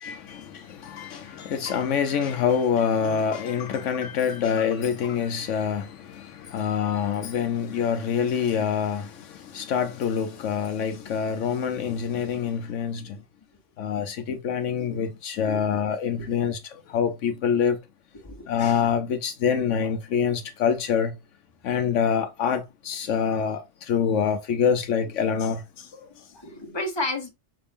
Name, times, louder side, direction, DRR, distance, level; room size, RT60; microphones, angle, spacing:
voice 1, 0.0-13.2 13.8-17.8 18.5-21.1 21.6-25.9, left 7 dB, 75° left, 1.0 m, -26 dB
voice 2, 15.4-15.8 16.2-16.4 18.2-18.5 25.9-27.3, left 2 dB, 20° left, 1.2 m, -33 dB
5.8 x 2.5 x 3.5 m
omnidirectional pair, 1.3 m